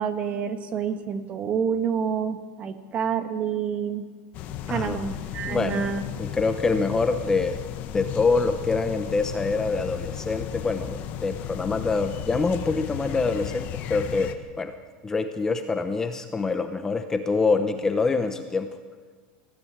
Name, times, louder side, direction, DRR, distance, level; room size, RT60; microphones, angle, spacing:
voice 1, 0.0-4.0 4.7-6.0, right 7 dB, 30° right, 9 dB, 1.3 m, -28 dB
sound 1, 4.3-14.3, left 10 dB, 40° left, 1.3 m, -35 dB
voice 2, 4.7-5.1 5.5-5.9 6.2-7.6 7.9-14.7 15.0-18.8, left 4 dB, 10° left, 8 dB, 0.8 m, -25 dB
19.5 x 15.5 x 8.8 m, 1.6 s
supercardioid pair, 165°, 5 cm